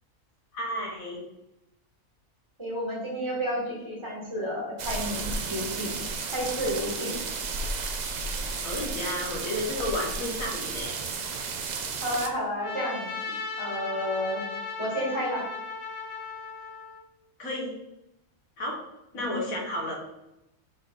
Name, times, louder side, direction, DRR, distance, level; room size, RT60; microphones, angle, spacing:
voice 1, 0.5-1.2 8.6-11.0 17.4-17.7 18.6-18.8 19.1-20.0, left 1 dB, 75° left, -2 dB, 1.9 m, -32 dB
voice 2, 2.6-5.9 6.3-7.1 12.0-13.2 13.6-14.4 14.8-15.4 19.1-19.4, equal, 20° right, -6 dB, 2.3 m, -31 dB
sound 1, 4.8-12.3, right 4 dB, 60° right, 0.4 m, -33 dB
Trumpet, 12.6-17.0, left 4 dB, 60° left, 1.4 m, -36 dB
6.2 x 3.9 x 4.1 m, 0.89 s
omnidirectional pair, 1.5 m